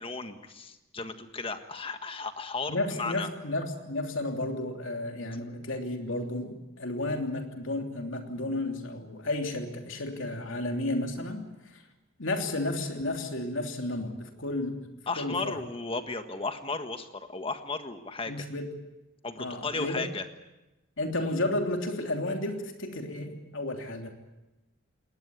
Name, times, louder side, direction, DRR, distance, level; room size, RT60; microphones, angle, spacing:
voice 1, 0.0-3.3 15.1-18.3 19.2-20.2, left 3 dB, 25° left, 8 dB, 1.5 m, -35 dB
voice 2, 2.7-11.8 12.2-14.8 15.2-15.6 18.3-18.7 19.4-20.0 21.0-24.1, left 2 dB, 70° left, 3 dB, 3.1 m, -32 dB
21.0 x 19.0 x 9.5 m, 1.0 s
head